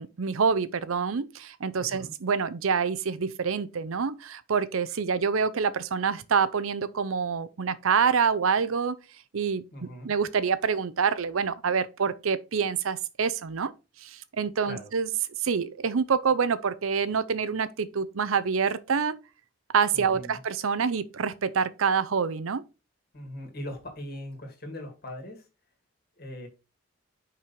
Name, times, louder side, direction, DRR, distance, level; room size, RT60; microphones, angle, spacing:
voice 1, 0.0-9.0 9.3-13.7 14.0-15.1 15.4-19.2 19.7-22.6, right 6 dB, 80° right, 0.6 m, -26 dB
voice 2, 1.8-2.1 9.7-10.1 14.6-14.9 19.9-20.4 23.1-25.5 26.2-26.5, left 1 dB, 45° left, 2.2 m, -40 dB
5.7 x 5.4 x 4.4 m
head